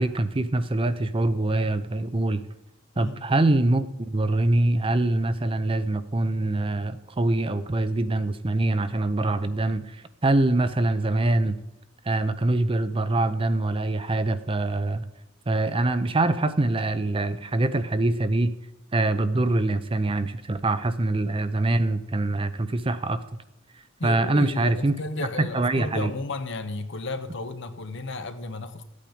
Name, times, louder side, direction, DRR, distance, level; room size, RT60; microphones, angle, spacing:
voice 1, 0.0-2.4 3.0-11.6 12.1-15.1 15.5-18.5 18.9-23.2 24.0-25.0 25.4-26.1, right 2 dB, 25° right, 11 dB, 0.6 m, -24 dB
voice 2, 2.9-3.3 24.0-28.8, left 2 dB, 60° left, 9 dB, 1.0 m, -33 dB
14.0 x 8.6 x 5.1 m, 0.87 s
head